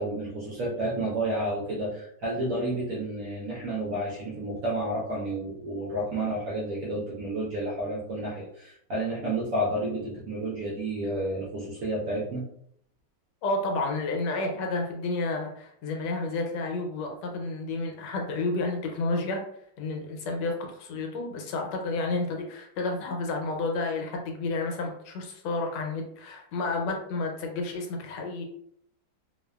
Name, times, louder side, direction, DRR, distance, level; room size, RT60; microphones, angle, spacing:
voice 1, 0.0-12.4, right 1 dB, 65° right, -4 dB, 0.8 m, -31 dB
voice 2, 13.4-19.4 19.8-28.4, left 3 dB, 80° left, 2 dB, 1.2 m, -31 dB
2.8 x 2.2 x 2.2 m, 0.70 s
omnidirectional pair, 2.0 m